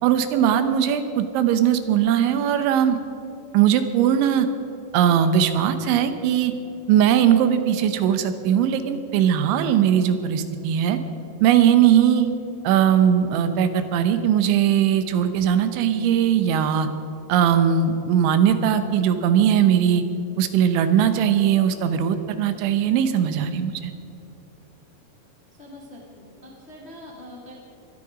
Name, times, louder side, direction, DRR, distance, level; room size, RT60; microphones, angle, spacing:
voice 1, 0.0-3.0 3.5-4.5 4.9-6.5 6.9-11.0 11.4-12.3 12.6-16.9 17.3-20.0 20.4-23.9, right 9 dB, 80° right, 9 dB, 3.2 m, -19 dB
voice 2, 25.6-27.5, left 1 dB, 40° left, -3 dB, 0.8 m, -43 dB
21.5 x 12.5 x 5.1 m, 2.8 s
omnidirectional pair, 5.4 m